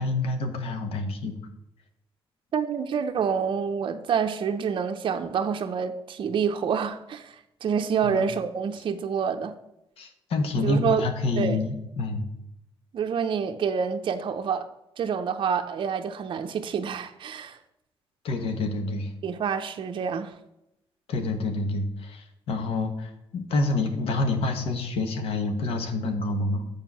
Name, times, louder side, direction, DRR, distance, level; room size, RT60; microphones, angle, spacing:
voice 1, 0.0-1.3 8.0-8.2 10.0-12.3 18.2-19.1 21.1-26.7, left 2 dB, 85° left, 1.3 m, -27 dB
voice 2, 2.5-7.4 7.6-9.5 10.6-11.1 11.4-11.6 12.9-14.7 15.0-17.6 19.2-20.3, right 6 dB, 60° right, 0.7 m, -27 dB
7.4 x 4.9 x 6.0 m
cardioid pair, 115°, 10 cm